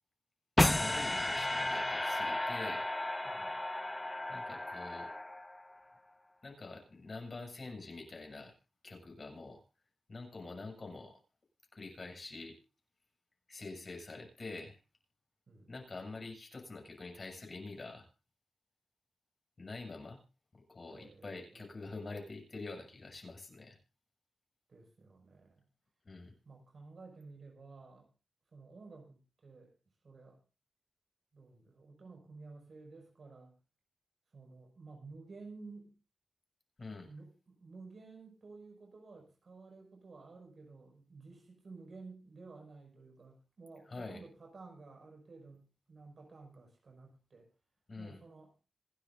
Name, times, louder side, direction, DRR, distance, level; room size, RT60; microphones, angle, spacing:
sound 1, 0.6-5.8, left 1 dB, 20° left, 0.7 m, -33 dB
voice 1, 0.8-2.9 4.3-5.1 6.4-8.5 8.8-9.6 10.1-11.2 11.7-12.6 13.5-14.8 15.7-18.1 19.6-20.2 20.5-23.8 26.0-26.3 36.8-37.1 43.9-44.2 47.9-48.2, left 3 dB, 50° left, 3 dB, 7.6 m, -46 dB
voice 2, 3.2-3.6 15.5-15.8 20.9-21.7 24.7-25.7 26.4-28.1 28.5-29.7 30.0-30.4 31.3-33.5 34.3-35.9 37.0-47.5 48.0-48.5, right 3 dB, 65° right, 1 dB, 6.2 m, -53 dB
27.0 x 10.5 x 2.7 m, 0.32 s
cardioid pair, 65°, 0 cm